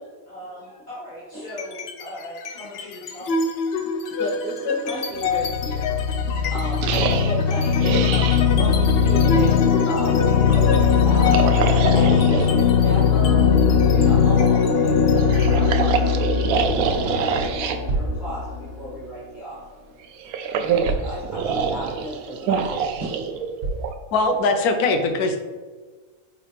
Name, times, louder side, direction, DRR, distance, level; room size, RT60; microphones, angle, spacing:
voice 1, 0.3-3.4 7.5-8.2 8.5-8.7, left 1 dB, 50° left, -10 dB, 2.0 m, -39 dB
sound 1, 1.5-2.0 2.4-19.0, left 6 dB, 65° left, 0.6 m, -20 dB
voice 2, 4.1-8.3 8.6-11.4 11.7-13.5 13.9-19.6 20.6-23.4, right 1 dB, 30° right, -9 dB, 1.9 m, -34 dB
sound 2, 6.8-8.5 11.2-12.5 15.1-17.8 20.0-23.9, right 6 dB, 80° right, 1.1 m, -25 dB
sound 3, 17.8-18.2 19.8-19.9 20.8-21.2 21.8-21.9 22.5-22.6 23.6-23.9, right 2 dB, 65° right, 1.5 m, -27 dB
voice 3, 24.1-25.4, left 3 dB, 80° left, 6 dB, 1.2 m, -21 dB
8.4 x 3.9 x 3.3 m, 1.4 s
omnidirectional pair, 1.6 m